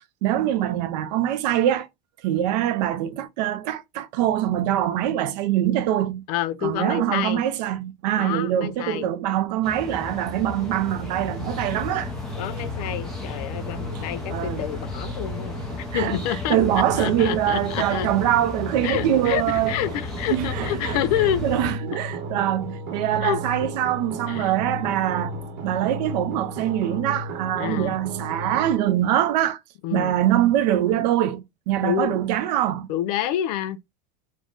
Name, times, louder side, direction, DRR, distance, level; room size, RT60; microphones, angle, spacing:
voice 1, 0.2-1.9 2.2-6.2 6.6-12.1 14.3-14.7 15.9-16.2 16.5-19.7 20.3-21.0 21.4-25.3 25.6-29.6 29.9-32.9, right 12 dB, 90° right, 0.5 m, -23 dB
voice 2, 6.3-7.4 8.2-9.1 12.4-15.6 15.9-18.1 18.8-21.4 23.2-23.4 24.3-24.5 27.5-28.0 29.8-30.2 31.8-32.2 32.9-33.8, left 11 dB, 70° left, 0.4 m, -28 dB
sound 1, 9.6-21.7, left 3 dB, 5° left, 0.5 m, -35 dB
sound 2, 10.6-28.8, equal, 65° right, 0.8 m, -35 dB
2.5 x 2.1 x 3.4 m
cardioid pair, 175°, 21 cm